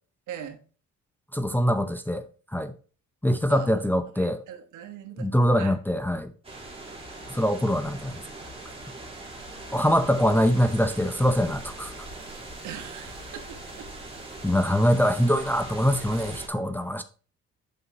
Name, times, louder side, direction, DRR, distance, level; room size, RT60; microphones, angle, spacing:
voice 1, 0.3-0.6 3.5-3.7 4.2-5.3 5.6-5.7 12.6-13.9, right 9 dB, 85° right, 1.4 m, -41 dB
voice 2, 1.3-2.2 2.5-2.7 3.2-4.4 5.2-6.3 7.3-8.1 9.7-11.9 14.4-17.0, equal, 5° left, 0.6 m, -23 dB
sound 1, 6.4-16.5, right 2 dB, 20° right, 2.6 m, -41 dB
8.2 x 5.7 x 2.9 m
cardioid pair, 90°, 30 cm